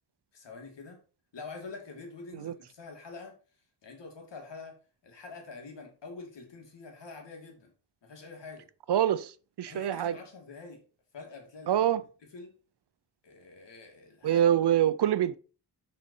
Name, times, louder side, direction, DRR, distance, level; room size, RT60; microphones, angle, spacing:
voice 1, 0.3-1.0 1.3-3.3 3.8-4.7 5.0-7.7 8.0-8.7 9.7-10.8 11.1-11.8 12.3-12.5 13.2-14.4, left 4 dB, 85° left, 2.3 m, -46 dB
voice 2, 8.9-9.3 9.6-10.2 11.7-12.0 14.2-15.4, right 10 dB, 70° right, 0.6 m, -25 dB
6.6 x 4.4 x 5.2 m
wide cardioid pair, 155°, 42 cm